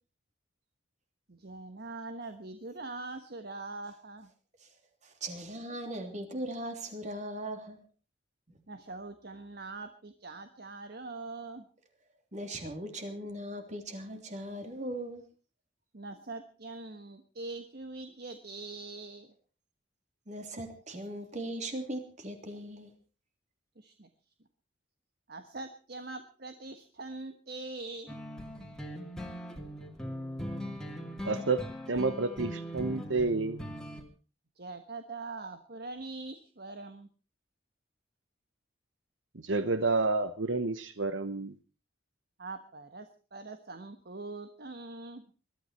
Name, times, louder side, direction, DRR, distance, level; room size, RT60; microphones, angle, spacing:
voice 1, 1.3-4.3 8.7-11.7 15.9-19.3 23.8-24.1 25.3-28.2 34.6-37.1 42.4-45.2, right 3 dB, 55° right, 8 dB, 1.4 m, -43 dB
voice 2, 5.0-7.8 12.3-15.2 20.3-22.9, right 1 dB, 40° right, 6 dB, 3.2 m, -39 dB
sound 1, 28.1-34.0, equal, 5° left, 2.6 m, -40 dB
voice 3, 31.2-33.6 39.3-41.6, right 3 dB, 75° right, 11 dB, 1.0 m, -30 dB
22.0 x 13.0 x 4.4 m, 0.37 s
head